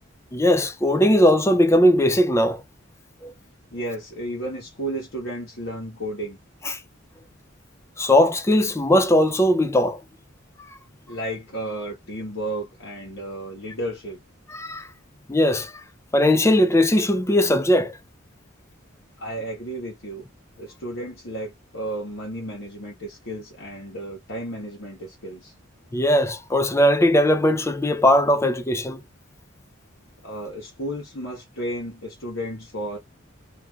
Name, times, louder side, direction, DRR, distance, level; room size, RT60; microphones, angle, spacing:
voice 1, 0.3-2.6 3.2-3.3 6.6-6.8 8.0-10.0 14.5-14.9 15.3-15.8 16.1-18.0 25.9-29.0, left 1 dB, 15° left, 0.5 m, -19 dB
voice 2, 3.7-6.4 11.1-14.2 19.2-20.2 20.6-25.5 30.2-33.0, right 1 dB, 60° left, 1.5 m, -33 dB
3.1 x 2.9 x 2.4 m
head